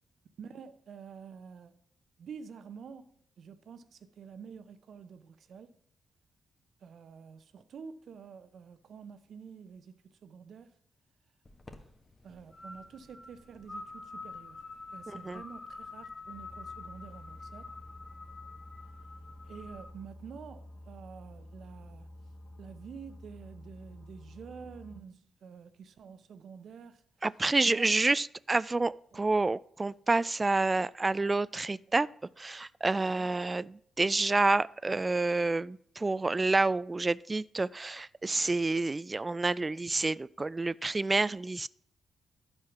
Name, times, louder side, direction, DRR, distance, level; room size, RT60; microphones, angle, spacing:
voice 1, 0.4-1.8 2.2-5.7 6.8-10.7 12.2-14.6 14.9-17.7 19.4-22.1 22.6-27.0 27.7-27.9 29.1-29.2 33.1-33.3, right 6 dB, 65° right, 0.8 m, -48 dB
sound 1, 11.4-19.9, left 3 dB, 35° left, 1.4 m, -47 dB
voice 2, 15.1-15.4 27.2-32.1 32.4-41.7, right 3 dB, 30° right, 0.3 m, -29 dB
sound 2, 16.3-25.0, left 1 dB, 70° left, 1.4 m, -50 dB
11.0 x 5.7 x 5.9 m
hypercardioid pair, 40°, 0 cm